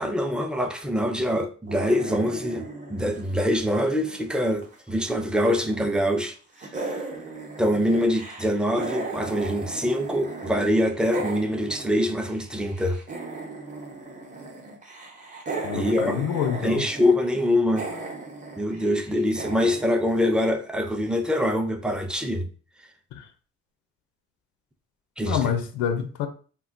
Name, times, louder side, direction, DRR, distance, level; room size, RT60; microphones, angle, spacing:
voice 1, 0.0-2.6 2.9-6.4 6.8-6.9 7.6-13.0 15.7-16.2 16.6-17.9 18.6-22.5 25.2-25.4, left 1 dB, 5° right, 0.4 m, -24 dB
sound 1, 1.7-4.7 5.0-6.3 6.6-10.5 10.8-20.9, right 3 dB, 25° right, 0.8 m, -37 dB
voice 2, 15.6-16.8 23.1-23.3 25.2-26.3, left 8 dB, 90° left, 0.4 m, -27 dB
2.2 x 2.2 x 3.6 m
cardioid pair, 90°, 30 cm